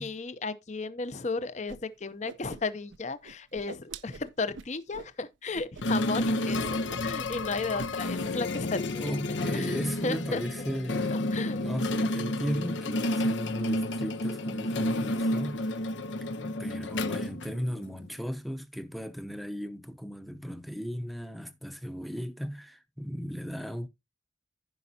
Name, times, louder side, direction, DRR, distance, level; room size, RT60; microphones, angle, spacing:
voice 1, 0.0-10.4 11.1-11.6, left 3 dB, 40° left, 0.7 m, -34 dB
Whoosh swoosh swish, 1.7-1.8 2.1-3.0 3.2-5.1 5.5-5.8 6.1-6.3 6.6-7.1 7.4-7.9, right 5 dB, 80° right, 0.6 m, -45 dB
sound 1, 5.8-18.1, left 1 dB, 75° left, 0.8 m, -31 dB
voice 2, 8.9-11.2 11.6-15.8 16.4-23.9, equal, ahead, 0.7 m, -36 dB
15.5 x 5.2 x 2.8 m
head